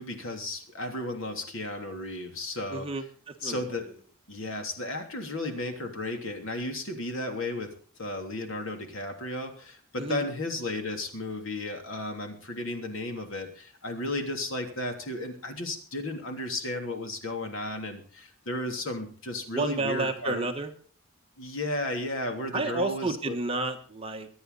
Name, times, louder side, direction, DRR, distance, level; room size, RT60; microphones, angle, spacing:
voice 1, 0.0-2.9 3.4-3.9 4.3-7.7 8.0-20.5 21.4-23.4, left 1 dB, 70° left, 5 dB, 3.1 m, -34 dB
voice 2, 2.7-3.6 10.0-10.3 19.5-20.7 22.5-24.3, right 2 dB, 25° right, 4 dB, 1.5 m, -31 dB
24.5 x 9.7 x 4.2 m, 0.43 s
head